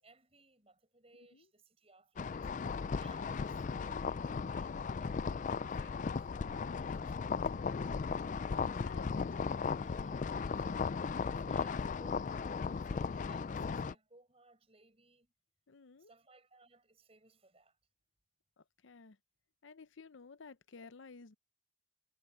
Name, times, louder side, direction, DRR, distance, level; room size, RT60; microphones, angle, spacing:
voice 1, 0.0-5.4 5.7-7.8 8.6-9.3 9.7-10.9 11.3-15.3 16.0-17.8, right 2 dB, 30° right, 7.1 m, -63 dB
sound 1, 2.2-13.9, left 5 dB, 40° left, 0.3 m, -36 dB
voice 2, 8.5-9.1 15.7-16.1 18.6-19.2 19.6-21.3, left 4 dB, 80° left, 0.7 m, -54 dB
head